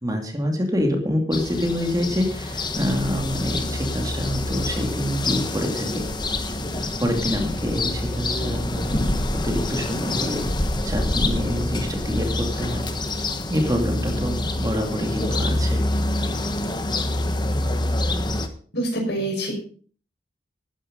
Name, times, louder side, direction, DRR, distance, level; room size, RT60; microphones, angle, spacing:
voice 1, 0.0-6.0 6.7-10.5 10.8-12.8 13.1-15.8, equal, 20° right, 3 dB, 2.3 m, -26 dB
sound 1, 1.3-18.5, left 1 dB, 25° left, 1.2 m, -26 dB
voice 2, 18.7-19.5, right 1 dB, 65° left, 1 dB, 5.7 m, -25 dB
13.0 x 9.9 x 5.3 m, 0.43 s
head